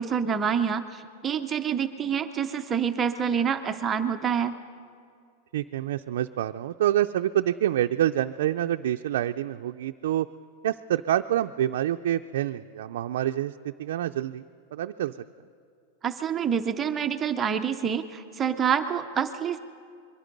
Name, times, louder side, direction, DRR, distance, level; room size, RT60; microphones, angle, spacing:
voice 1, 0.0-4.5 16.0-19.6, right 7 dB, 15° right, 6 dB, 0.6 m, -27 dB
voice 2, 5.5-10.3 10.6-14.4 14.7-15.2, right 12 dB, 75° right, 5 dB, 0.4 m, -27 dB
25.5 x 22.5 x 5.3 m, 2.2 s
supercardioid pair, 170°, 0 cm